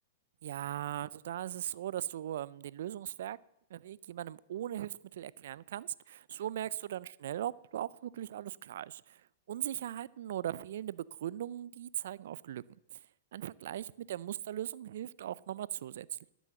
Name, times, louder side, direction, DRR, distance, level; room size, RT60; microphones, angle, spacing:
voice 1, 0.4-3.4 3.7-9.2 9.5-12.6 12.9-13.0 13.3-16.3, right 11 dB, 70° right, 0.4 m, -39 dB
12.0 x 6.1 x 7.7 m
hypercardioid pair, 125°, 0 cm